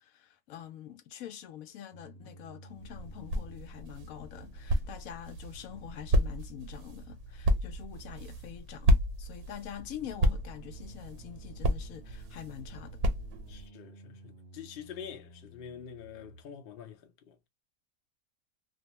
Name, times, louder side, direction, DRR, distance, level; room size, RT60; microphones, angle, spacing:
voice 1, 0.0-13.0, left 10 dB, 75° left, 1.0 m, -45 dB
sound 1, 1.9-16.4, right 1 dB, 55° right, 0.7 m, -55 dB
sound 2, 2.7-13.7, equal, 80° right, 1.2 m, -32 dB
voice 2, 13.5-17.5, left 8 dB, 55° left, 0.6 m, -46 dB
2.7 x 2.2 x 2.9 m
omnidirectional pair, 1.6 m